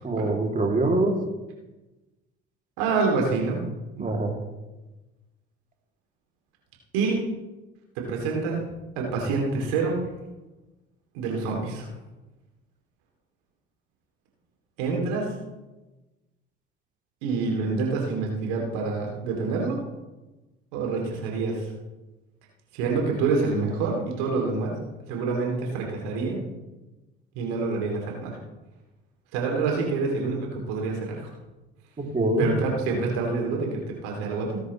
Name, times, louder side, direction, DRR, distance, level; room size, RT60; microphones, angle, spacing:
voice 1, 0.0-1.2 4.0-4.3 32.0-32.5, right 2 dB, 20° right, 1 dB, 2.8 m, -24 dB
voice 2, 2.8-3.7 4.0-4.1 6.9-7.2 8.0-8.7 8.9-10.1 11.1-11.9 14.8-15.3 17.2-19.8 20.7-21.7 22.7-24.8 25.1-26.4 27.3-28.4 29.3-31.3 32.4-34.6, right 4 dB, 65° right, 0 dB, 2.9 m, -27 dB
18.5 x 10.5 x 3.2 m, 1.1 s
figure-of-eight pair, 55°, 36 cm